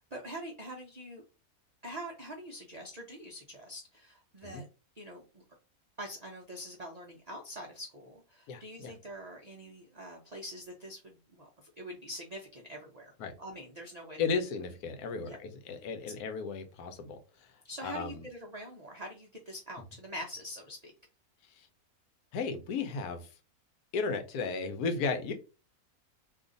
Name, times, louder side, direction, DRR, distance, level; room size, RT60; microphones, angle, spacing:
voice 1, 0.1-1.2 1.8-4.7 5.0-5.4 6.0-14.2 15.2-15.4 17.6-20.9, equal, 60° right, 0 dB, 0.4 m, -44 dB
voice 2, 8.5-8.9 13.2-13.3 14.2-18.3 21.4-21.7 22.3-23.3 23.9-25.3, left 4 dB, 85° left, 7 dB, 1.2 m, -35 dB
2.7 x 2.4 x 3.8 m, 0.32 s
omnidirectional pair, 1.6 m